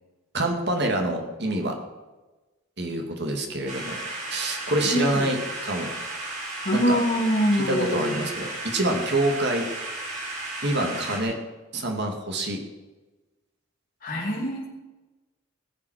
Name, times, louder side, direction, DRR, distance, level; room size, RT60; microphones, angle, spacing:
voice 1, 0.3-1.8 2.8-4.0 4.3-5.9 6.7-7.0 7.7-9.7 10.6-11.4 11.7-12.6, right 1 dB, 55° right, 3 dB, 2.4 m, -26 dB
sound 1, 3.7-11.2, right 2 dB, 35° right, 4.1 m, -34 dB
voice 2, 4.8-5.3 6.6-8.3 14.0-14.7, equal, 45° left, -3 dB, 3.0 m, -24 dB
19.0 x 7.6 x 6.4 m, 1.2 s
head